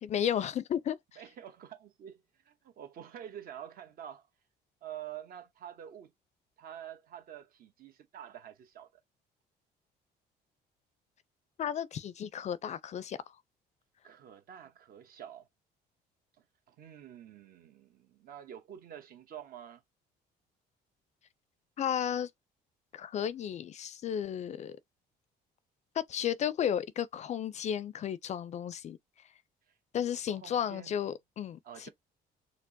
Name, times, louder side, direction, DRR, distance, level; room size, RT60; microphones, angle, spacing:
voice 1, 0.0-1.0 11.6-13.2 21.8-22.3 22.9-24.8 25.9-29.0 29.9-31.9, left 9 dB, 45° left, 0.4 m, -33 dB
voice 2, 1.2-4.3 4.8-6.1 6.6-8.9 14.0-15.5 16.7-19.8 30.0-31.0 31.6-31.9, right 10 dB, 60° right, 0.9 m, -48 dB
4.4 x 2.0 x 2.6 m
cardioid pair, 110°, 17 cm